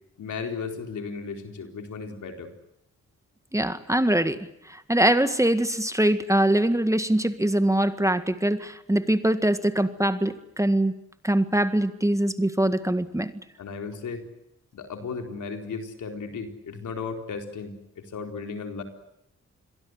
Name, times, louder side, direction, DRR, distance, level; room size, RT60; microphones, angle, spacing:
voice 1, 0.2-2.5 13.6-14.3 14.7-18.8, left 5 dB, 80° left, 5 dB, 4.3 m, -35 dB
voice 2, 3.5-10.9 11.2-13.3, right 1 dB, 10° right, 11 dB, 1.9 m, -23 dB
28.0 x 23.0 x 8.1 m, 0.80 s
cardioid pair, 60°, 30 cm